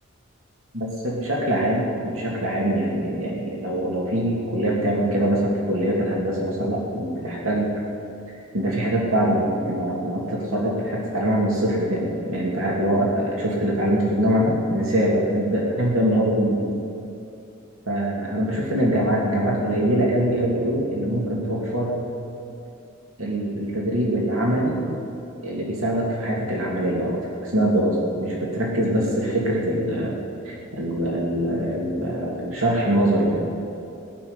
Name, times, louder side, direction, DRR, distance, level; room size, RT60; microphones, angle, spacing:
voice 1, 0.7-7.8 8.5-16.6 17.9-22.0 23.2-24.8 25.4-30.1 30.4-33.5, right 1 dB, 85° right, -3 dB, 2.6 m, -23 dB
17.5 x 7.3 x 9.8 m, 2.7 s
head